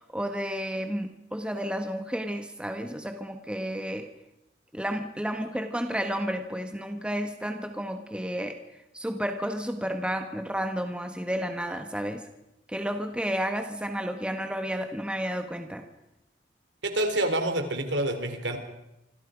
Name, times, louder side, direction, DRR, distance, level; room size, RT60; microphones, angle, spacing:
voice 1, 0.1-4.1 4.7-8.6 8.9-12.2 12.7-15.8, equal, 5° right, 6 dB, 1.4 m, -31 dB
voice 2, 16.8-18.6, right 1 dB, 75° right, 7 dB, 3.7 m, -27 dB
27.5 x 25.5 x 5.2 m, 0.88 s
head